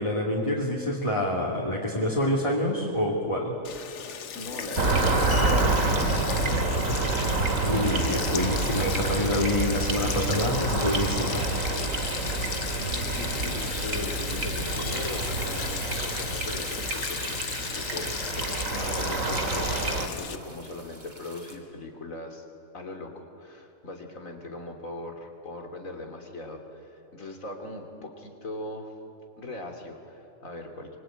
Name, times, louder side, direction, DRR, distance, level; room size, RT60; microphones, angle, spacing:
voice 1, 0.0-3.5 7.6-11.5, left 1 dB, 25° left, -2 dB, 2.7 m, -27 dB
Sink (filling or washing), 3.6-20.4, left 7 dB, 65° left, 1.3 m, -35 dB
voice 2, 4.3-7.4 12.6-22.5 22.7-28.9 29.4-31.0, left 2 dB, 85° left, 3 dB, 3.5 m, -39 dB
tinkling water, 4.5-21.6, right 1 dB, 35° right, 3.9 m, -50 dB
sound 1, 4.8-20.1, right 3 dB, 80° right, 2.6 m, -28 dB
25.0 x 24.5 x 9.1 m, 2.9 s
omnidirectional pair, 1.4 m